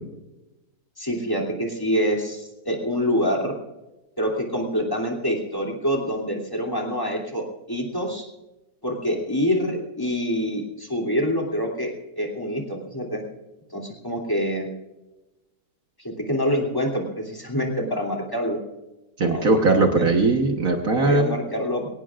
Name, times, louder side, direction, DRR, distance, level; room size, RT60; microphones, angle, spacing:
voice 1, 1.0-3.6 4.2-8.3 8.8-13.2 13.7-14.7 16.0-18.6 19.3-19.6 20.0-20.1 20.9-21.9, equal, 10° left, 2 dB, 2.9 m, -26 dB
voice 2, 19.2-21.4, right 3 dB, 55° right, 3 dB, 1.7 m, -20 dB
22.5 x 18.0 x 2.5 m, 0.99 s
omnidirectional pair, 1.8 m